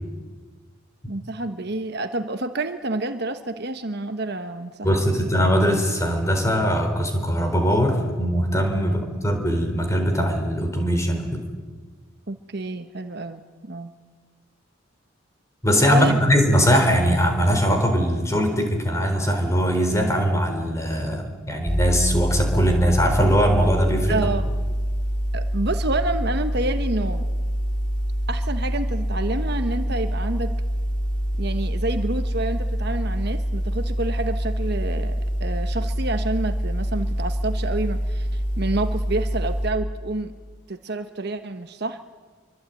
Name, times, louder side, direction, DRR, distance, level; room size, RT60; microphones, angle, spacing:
voice 1, 1.1-4.9 5.2-5.3 8.8-9.0 12.3-13.4 13.7-13.9 15.9-16.2 24.1-24.5 25.3-27.3 28.3-30.5 31.4-40.3 40.7-42.0, right 2 dB, 50° right, 8 dB, 1.2 m, -28 dB
voice 2, 4.8-11.4 15.6-24.2, equal, 15° left, 4 dB, 4.1 m, -21 dB
sound 1, 21.7-39.7, equal, 40° left, 2.3 m, -25 dB
26.0 x 24.0 x 9.2 m, 1.4 s
head